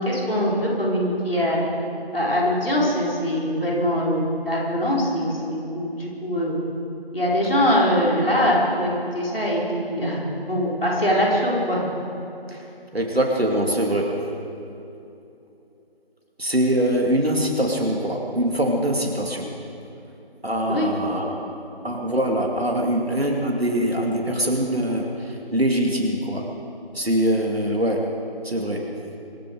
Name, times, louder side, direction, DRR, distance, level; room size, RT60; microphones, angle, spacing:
voice 1, 0.0-1.6 2.1-6.5 7.1-11.8 20.7-20.9, equal, 65° left, -4 dB, 4.7 m, -22 dB
voice 2, 12.9-14.3 16.4-19.5 20.4-21.3 21.8-26.4 26.9-28.1 28.4-28.9, right 1 dB, 75° right, 0 dB, 2.5 m, -23 dB
25.0 x 11.5 x 4.8 m, 2.8 s
figure-of-eight pair, 170°, 31 cm